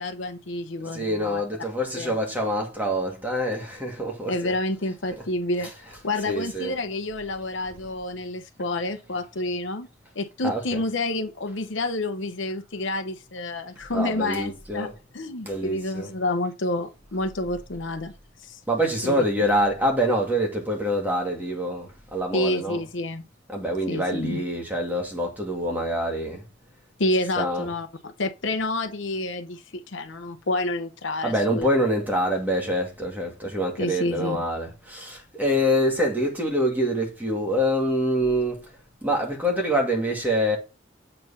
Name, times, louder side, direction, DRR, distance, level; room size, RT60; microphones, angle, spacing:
voice 1, 0.0-1.4 1.9-2.1 4.3-5.7 6.0-9.9 10.1-18.1 18.4-18.6 19.0-19.1 22.3-23.2 23.9-24.4 27.0-31.7 33.8-34.4, left 2 dB, 75° left, 0.9 m, -29 dB
voice 2, 0.9-4.5 5.1-5.2 5.6-6.8 10.4-10.8 13.9-14.9 15.5-16.1 18.7-22.9 23.5-26.4 27.1-27.7 31.2-38.7 39.0-40.6, equal, 10° right, 2.1 m, -26 dB
7.8 x 4.2 x 5.6 m
head